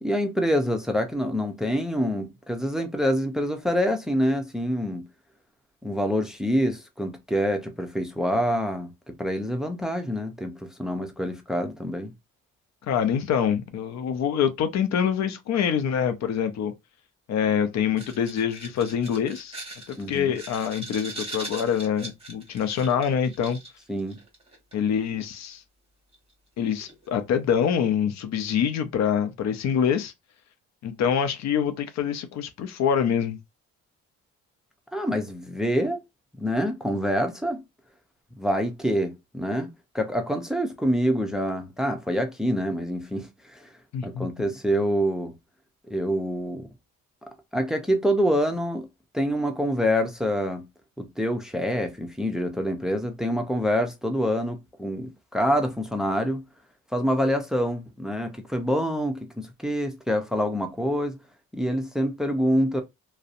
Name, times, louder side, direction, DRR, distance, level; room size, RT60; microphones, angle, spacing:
voice 1, 0.0-5.0 5.8-12.1 20.0-20.4 23.9-24.2 34.9-36.0 36.4-37.6 38.4-43.7 44.0-45.3 45.9-46.7 47.5-48.9 49.1-50.7 51.0-56.4 56.9-61.2 61.5-62.8, equal, ahead, 0.5 m, -26 dB
voice 2, 12.9-16.7 17.3-19.6 19.9-23.6 24.7-25.6 26.6-30.1 30.8-33.4 43.9-44.3, left 8 dB, 65° left, 0.5 m, -25 dB
sound 1, 18.0-24.9 26.1-26.2 26.8-27.1 27.7-27.9, right 2 dB, 20° right, 1.1 m, -40 dB
2.6 x 2.0 x 2.5 m
cardioid pair, 90°, 30 cm